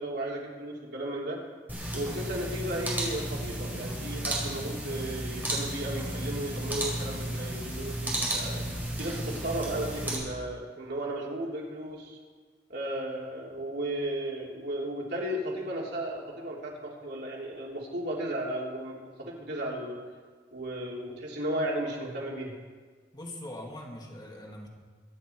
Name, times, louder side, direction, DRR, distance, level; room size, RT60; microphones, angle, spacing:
voice 1, 0.0-1.4 1.9-8.6 9.0-12.2 12.7-20.0 20.5-22.5, right 1 dB, 65° right, -3 dB, 3.4 m, -35 dB
sound 1, 1.7-10.1, right 1 dB, 10° right, 4.9 m, -33 dB
voice 2, 23.1-24.7, left 1 dB, 25° left, -1 dB, 2.2 m, -42 dB
24.0 x 10.0 x 4.7 m, 1.5 s
head